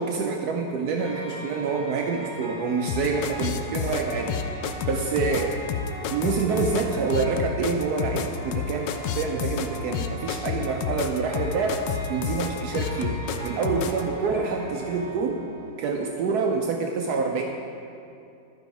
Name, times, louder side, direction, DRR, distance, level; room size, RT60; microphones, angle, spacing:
voice 1, 0.0-4.4 4.9-5.6 6.1-8.9 9.2-11.7 12.1-15.4 15.8-17.4, right 4 dB, 85° right, 2 dB, 0.8 m, -27 dB
sound 1, 1.0-15.7, right 1 dB, 20° right, 2.1 m, -39 dB
sound 2, 2.9-14.0, left 8 dB, 75° left, 1.1 m, -29 dB
12.0 x 6.0 x 4.7 m, 2.6 s
omnidirectional pair, 2.3 m